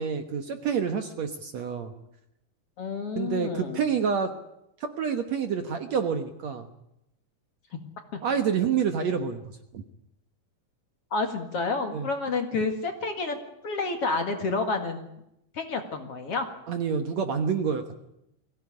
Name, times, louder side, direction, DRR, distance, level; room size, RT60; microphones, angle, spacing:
voice 1, 0.0-1.9 3.2-4.3 5.0-6.7 8.2-9.4 9.7-9.8 11.9-12.1 16.7-18.0, right 6 dB, 60° right, 7 dB, 2.1 m, -28 dB
voice 2, 2.8-3.8 8.1-8.2 11.1-13.4 13.6-15.1 15.5-16.5, left 3 dB, 45° left, 5 dB, 2.5 m, -29 dB
23.0 x 17.0 x 9.8 m, 0.83 s
omnidirectional pair, 4.3 m